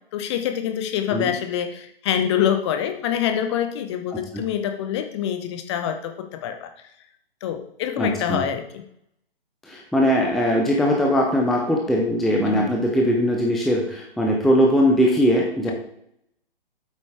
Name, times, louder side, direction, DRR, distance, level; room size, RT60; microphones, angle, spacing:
voice 1, 0.1-6.7 7.4-8.8 12.4-12.7, left 9 dB, 30° left, 7 dB, 0.9 m, -25 dB
voice 2, 4.1-4.4 8.0-8.5 9.7-15.7, equal, ahead, -1 dB, 0.6 m, -20 dB
8.3 x 8.0 x 3.4 m, 0.73 s
figure-of-eight pair, 125°, 29 cm